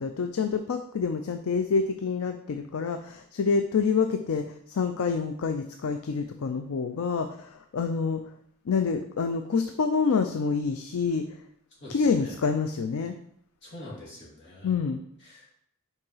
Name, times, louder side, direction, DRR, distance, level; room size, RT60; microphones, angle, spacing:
voice 1, 0.0-8.3 8.7-11.4 11.9-13.2 14.6-15.0, left 5 dB, 70° left, 7 dB, 0.4 m, -27 dB
voice 2, 11.7-12.4 13.6-14.7 15.2-15.5, left 1 dB, 55° left, -4 dB, 2.3 m, -45 dB
5.4 x 4.7 x 5.5 m, 0.73 s
head